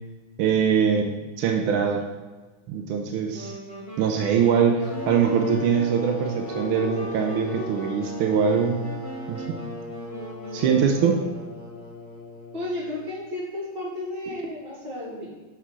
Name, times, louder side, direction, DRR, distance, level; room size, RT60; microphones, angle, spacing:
voice 1, 0.4-2.0 2.7-3.5 4.0-8.9 9.3-9.6 10.5-11.2, right 7 dB, 90° right, 2 dB, 1.5 m, -23 dB
sound 1, 3.3-11.8, right 1 dB, 30° left, 1.6 m, -39 dB
sound 2, 4.8-13.2, equal, 50° left, 0.5 m, -38 dB
voice 2, 12.5-15.3, left 1 dB, 60° right, -7 dB, 2.3 m, -33 dB
6.0 x 4.2 x 4.8 m, 1.2 s
omnidirectional pair, 2.3 m